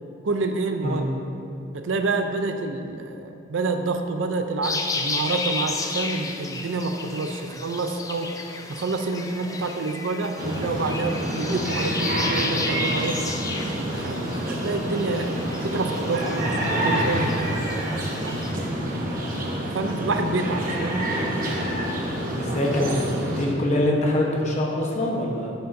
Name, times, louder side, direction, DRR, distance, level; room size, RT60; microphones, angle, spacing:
voice 1, 0.2-1.0 1.7-8.3 8.7-13.2 13.8-18.4 19.7-21.1, right 3 dB, 75° right, 6 dB, 0.5 m, -28 dB
sound 1, 4.6-18.5, left 3 dB, 20° left, 0.4 m, -33 dB
sound 2, 10.4-23.5, right 1 dB, 45° right, 1.1 m, -27 dB
voice 2, 22.3-25.5, left 1 dB, 35° left, -1 dB, 1.1 m, -24 dB
10.0 x 6.9 x 2.7 m, 2.5 s
head